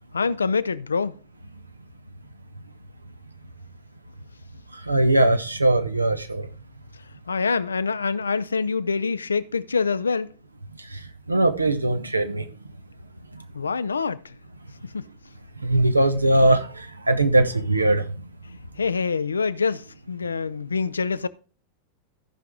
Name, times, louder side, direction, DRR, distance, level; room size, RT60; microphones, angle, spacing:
voice 1, 0.1-1.1 7.3-10.3 13.5-14.2 14.9-15.1 18.8-21.3, left 5 dB, 75° left, 0.5 m, -25 dB
voice 2, 4.9-6.4 11.3-12.4 15.6-16.7 17.1-18.0, right 2 dB, 85° right, 0.9 m, -20 dB
14.5 x 5.9 x 3.7 m
figure-of-eight pair, 90°, 0 cm